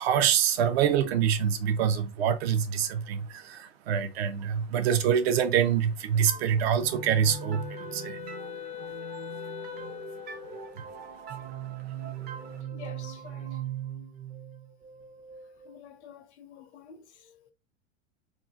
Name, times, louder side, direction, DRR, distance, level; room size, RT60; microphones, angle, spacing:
voice 1, 0.0-7.6 7.9-8.2 10.7-10.8, right 8 dB, 60° right, 0.7 m, -25 dB
sound 1, 6.3-15.8, right 8 dB, 25° right, 0.6 m, -40 dB
Wind instrument woodwind instrument, 6.7-10.8, left 13 dB, 20° left, 0.5 m, -42 dB
voice 2, 12.7-13.6 15.6-17.5, left 8 dB, 70° left, 0.8 m, -49 dB
3.7 x 2.4 x 2.6 m
figure-of-eight pair, 80°, 35 cm